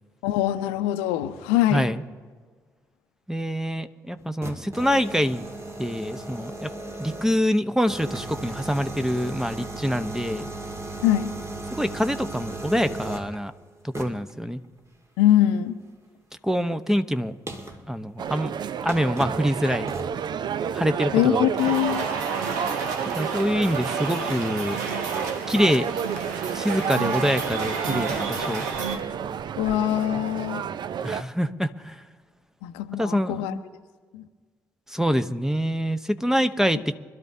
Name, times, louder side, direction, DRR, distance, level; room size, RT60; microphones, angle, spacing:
voice 1, 0.2-1.9 11.0-11.3 15.2-15.8 21.1-22.1 29.6-30.7 32.6-33.5 34.1-34.2, left 12 dB, 75° left, 11 dB, 0.7 m, -23 dB
voice 2, 1.7-2.0 3.3-5.4 5.8-6.7 7.0-10.5 11.7-13.5 13.8-14.6 16.4-17.4 17.9-18.5 18.8-19.9 20.7-21.5 23.1-24.8 25.5-25.9 26.5-28.6 31.0-32.0 32.9-33.6 34.9-36.9, equal, 5° right, 11 dB, 0.9 m, -25 dB
sound 1, 4.2-7.5 7.9-13.4 13.9-14.3 16.7-16.8 17.5-17.8 18.5-18.6 18.9-19.5 19.9-20.2, right 2 dB, 30° right, 1.9 m, -36 dB
sound 2, 18.2-31.2, right 8 dB, 50° right, 0.5 m, -30 dB
sound 3, 21.6-29.0, right 4 dB, 80° right, 1.2 m, -32 dB
25.0 x 12.5 x 2.8 m, 1.5 s
figure-of-eight pair, 40°, 9 cm